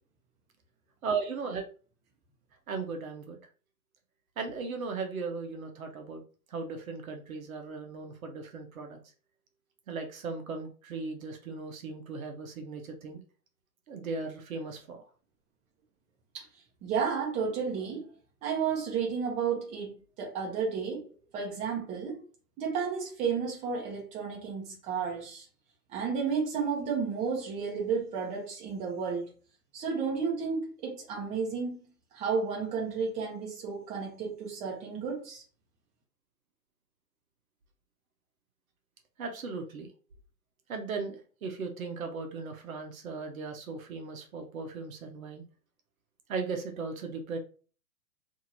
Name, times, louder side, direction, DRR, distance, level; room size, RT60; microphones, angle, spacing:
voice 1, 1.0-1.6 2.7-3.4 4.4-6.2 6.5-9.0 9.9-13.2 13.9-15.0 39.2-39.9 40.7-45.4 46.3-47.4, right 4 dB, 60° right, 5 dB, 0.8 m, -37 dB
voice 2, 16.8-18.1 18.4-21.0 21.3-22.2 22.6-25.4 25.9-29.2 29.7-31.8 32.1-35.4, right 6 dB, 15° right, -2 dB, 0.7 m, -32 dB
2.7 x 2.6 x 2.8 m, 0.38 s
figure-of-eight pair, 125°, 48 cm